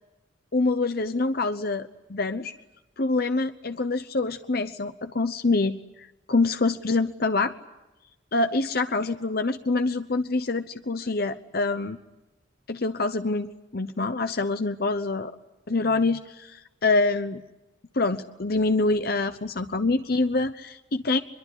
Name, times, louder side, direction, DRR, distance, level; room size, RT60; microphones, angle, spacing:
voice 1, 0.5-2.5 3.0-5.8 6.3-7.5 8.3-12.0 12.7-15.4 15.7-17.4 17.9-21.2, left 3 dB, 55° left, 9 dB, 0.9 m, -25 dB
24.0 x 22.5 x 9.9 m, 0.98 s
head